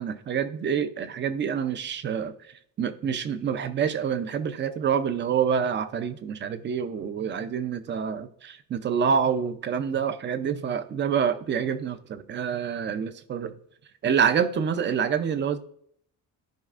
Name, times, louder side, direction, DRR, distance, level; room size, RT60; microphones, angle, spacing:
voice 1, 0.0-2.4 2.8-13.5 14.0-15.6, right 7 dB, 35° right, 0.5 m, -27 dB
14.0 x 5.2 x 2.5 m
cardioid pair, 150°, 33 cm